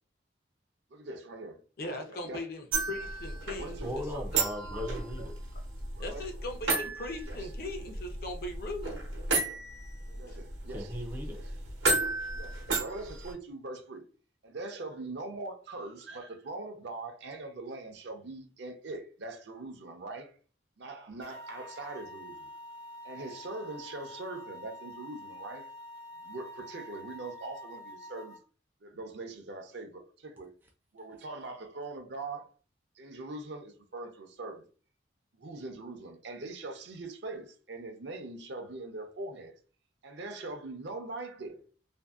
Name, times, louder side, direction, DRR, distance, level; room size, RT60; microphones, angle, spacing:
voice 1, 0.9-1.6 2.1-2.5 3.6-4.3 4.7-5.0 6.0-6.3 7.3-7.5 10.1-10.9 11.2-11.6 12.3-14.0 14.4-20.4 20.8-22.5 23.0-25.7 26.2-28.4 28.8-30.5 30.9-32.5 33.0-34.6 35.3-39.5 40.0-41.7, right 2 dB, 65° right, 0.6 m, -42 dB
voice 2, 1.8-3.8 4.6-4.7 6.0-9.0 10.1-10.4, left 2 dB, 50° left, 0.5 m, -39 dB
sound 1, 2.7-13.3, right 3 dB, 90° right, 0.9 m, -34 dB
voice 3, 3.8-5.3 10.7-11.4, left 1 dB, 10° right, 0.3 m, -38 dB
sound 2, 21.2-28.4, left 1 dB, 70° left, 0.9 m, -47 dB
2.6 x 2.5 x 2.3 m
head